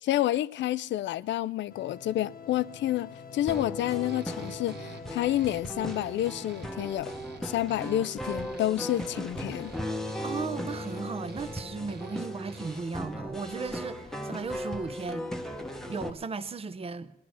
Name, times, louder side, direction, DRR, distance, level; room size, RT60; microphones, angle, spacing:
voice 1, 0.0-7.1 7.4-9.7, left 13 dB, 65° left, 0.4 m, -29 dB
sound 1, 1.7-16.2, left 5 dB, 45° left, 0.8 m, -48 dB
sound 2, 3.5-16.1, equal, ahead, 0.9 m, -37 dB
sound 3, 3.5-13.0, right 5 dB, 55° right, 1.1 m, -50 dB
voice 2, 10.2-15.3 15.9-17.1, right 4 dB, 30° right, 0.7 m, -36 dB
18.5 x 11.0 x 6.3 m
cardioid pair, 90°, 20 cm